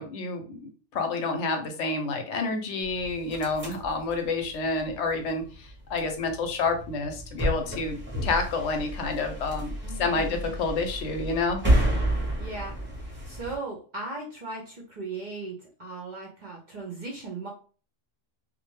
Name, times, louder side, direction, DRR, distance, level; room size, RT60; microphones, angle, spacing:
voice 1, 0.0-9.7 10.0-11.6, left 3 dB, 70° left, 5 dB, 0.8 m, -29 dB
sound 1, 2.8-13.5, right 1 dB, 10° right, 0.6 m, -31 dB
voice 2, 9.8-10.5 12.4-12.7 13.0-17.5, right 3 dB, 55° right, -1 dB, 0.5 m, -38 dB
2.4 x 2.1 x 3.0 m, 0.38 s
omnidirectional pair, 1.3 m